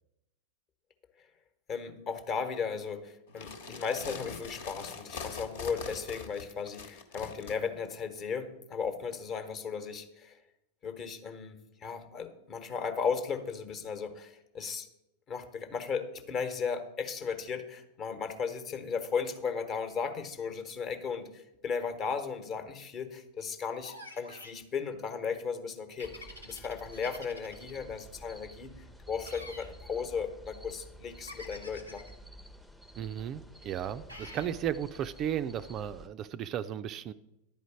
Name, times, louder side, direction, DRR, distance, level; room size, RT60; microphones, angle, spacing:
voice 1, 1.7-10.4 10.8-14.9 15.3-28.7 29.1-32.0, left 6 dB, 30° left, 9 dB, 1.1 m, -36 dB
sound 1, 3.3-7.6, left 5 dB, 55° left, 1.3 m, -42 dB
sound 2, 23.8-24.6 26.0-27.7 29.2-29.7 31.3-32.1 34.1-34.5, left 1 dB, 85° left, 1.4 m, -47 dB
sound 3, 26.0-36.1, right 1 dB, ahead, 0.7 m, -51 dB
voice 2, 33.0-37.1, right 9 dB, 35° right, 11 dB, 0.4 m, -35 dB
10.5 x 5.0 x 8.2 m, 0.89 s
figure-of-eight pair, 90°, 0 cm